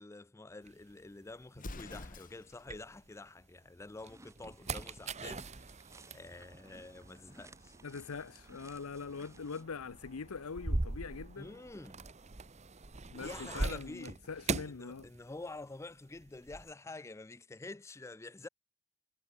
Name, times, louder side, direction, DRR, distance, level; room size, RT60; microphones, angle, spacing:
voice 1, 0.0-5.7 6.1-7.7 11.4-12.1 13.2-14.2 14.6-18.5, left 2 dB, 15° left, 0.3 m, -48 dB
sound 1, 0.7-3.4 3.9-15.6 15.9-16.7, right 3 dB, 30° right, 1.0 m, -42 dB
Explosion, 1.5-2.7, left 2 dB, 40° left, 1.7 m, -46 dB
sound 2, 4.0-9.6, right 2 dB, 15° right, 4.9 m, -59 dB
voice 2, 7.8-11.6 13.1-15.1, left 5 dB, 80° left, 0.7 m, -43 dB
head